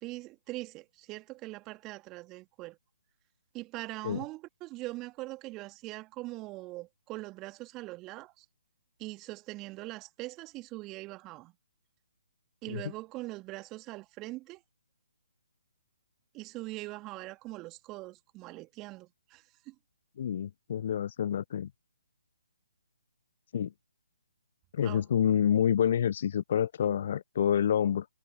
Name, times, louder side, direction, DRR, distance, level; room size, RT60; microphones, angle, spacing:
voice 1, 0.0-2.8 3.5-8.5 9.0-11.5 12.6-14.6 16.3-19.7 24.8-25.0, right 20 dB, 20° right, 2.4 m, -42 dB
voice 2, 20.2-21.7 23.5-23.7 24.7-28.1, left 9 dB, 45° left, 0.5 m, -28 dB
figure-of-eight pair, 135°, 0 cm